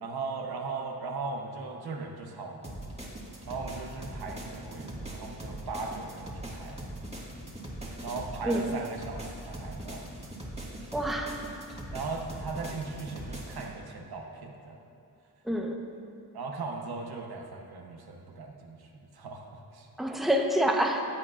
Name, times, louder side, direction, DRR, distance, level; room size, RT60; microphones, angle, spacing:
voice 1, 0.0-2.8 3.5-6.8 8.0-10.1 11.9-14.8 16.3-19.9, right 4 dB, 80° right, 1 dB, 1.0 m, -38 dB
sound 1, 2.6-13.7, right 1 dB, 15° right, 1.9 m, -41 dB
voice 2, 8.4-8.8 10.9-11.4 15.4-15.8 20.0-21.1, right 1 dB, ahead, 1 dB, 0.9 m, -27 dB
14.5 x 8.5 x 2.5 m, 2.5 s
cardioid pair, 65°, 37 cm